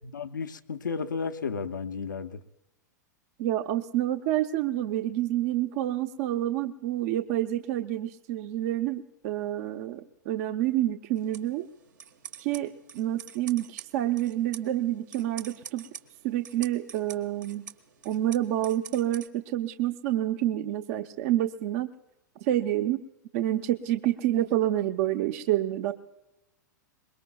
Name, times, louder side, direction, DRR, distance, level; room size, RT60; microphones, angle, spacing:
voice 1, 0.0-2.4, left 5 dB, 85° left, 9 dB, 0.7 m, -33 dB
voice 2, 3.4-11.7 12.4-15.8 16.2-17.6 18.0-21.9 22.4-23.0 23.3-25.9, right 13 dB, 50° right, 8 dB, 0.7 m, -28 dB
sound 1, 11.2-19.3, right 8 dB, 75° right, 1.4 m, -46 dB
23.5 x 21.5 x 2.3 m, 0.98 s
hypercardioid pair, 105°, 10 cm